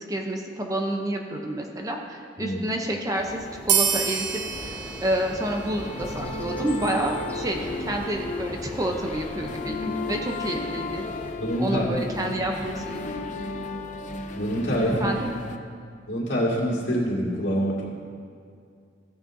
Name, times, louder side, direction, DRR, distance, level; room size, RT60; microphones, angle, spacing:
voice 1, 0.0-11.0 11.6-13.0 14.9-15.3, right 1 dB, 20° right, 2 dB, 0.7 m, -29 dB
sound 1, 3.1-11.3, equal, 10° left, 0.9 m, -40 dB
sound 2, 3.7-6.7, right 8 dB, 65° right, 0.7 m, -28 dB
sound 3, 4.5-15.6, left 3 dB, 40° left, 0.5 m, -35 dB
voice 2, 11.4-12.3 14.3-15.1 16.1-17.9, equal, 70° left, -5 dB, 2.3 m, -26 dB
15.0 x 9.6 x 2.7 m, 2.3 s
head